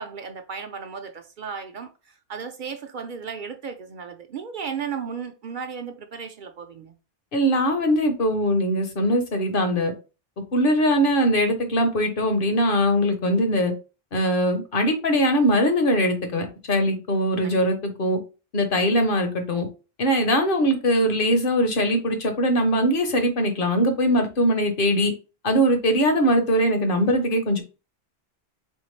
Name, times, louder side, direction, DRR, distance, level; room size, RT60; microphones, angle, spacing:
voice 1, 0.0-1.9 2.3-6.9 17.4-17.7, right 6 dB, 60° right, 0.6 m, -35 dB
voice 2, 7.3-9.9 10.5-13.7 14.1-18.2 18.5-19.7 20.0-25.1 25.4-27.6, equal, 60° left, 1.0 m, -21 dB
3.6 x 3.3 x 3.1 m
omnidirectional pair, 1.0 m